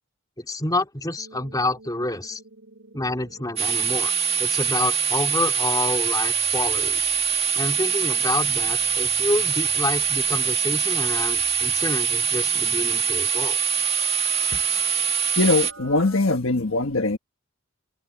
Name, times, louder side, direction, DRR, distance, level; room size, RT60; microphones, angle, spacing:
voice 1, 0.4-2.4 2.9-4.1 4.4-7.0 7.6-13.6, left 2 dB, 20° left, 3.8 m, -28 dB
sound 1, 1.2-16.2, right 3 dB, 70° right, 4.2 m, -47 dB
sound 2, 3.6-15.7, right 6 dB, 30° right, 1.8 m, -23 dB
voice 2, 15.4-17.2, left 2 dB, 70° left, 1.4 m, -21 dB
head